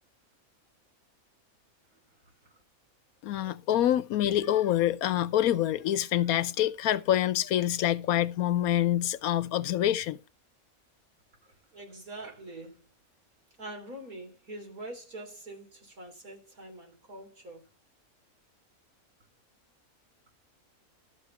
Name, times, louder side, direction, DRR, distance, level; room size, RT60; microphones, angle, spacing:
voice 1, 3.2-10.2, left 12 dB, 85° left, 1.2 m, -26 dB
voice 2, 11.7-12.8 13.6-17.6, right 1 dB, 85° right, 4.1 m, -44 dB
13.0 x 6.6 x 4.6 m
omnidirectional pair, 1.5 m